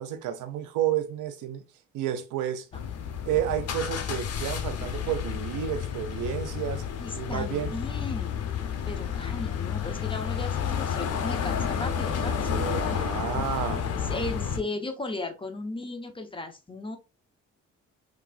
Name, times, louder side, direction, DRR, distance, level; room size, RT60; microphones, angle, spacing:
voice 1, 0.0-1.6 1.9-2.7 3.3-6.8 7.1-7.8 12.5-13.9, right 10 dB, 85° right, 0.6 m, -31 dB
sound 1, 2.7-14.6, left 7 dB, 55° left, 0.6 m, -31 dB
voice 2, 7.0-8.4 8.9-12.5 12.9-13.1 14.1-17.0, left 2 dB, 15° left, 0.7 m, -36 dB
3.2 x 2.5 x 2.4 m
cardioid pair, 90°, 30 cm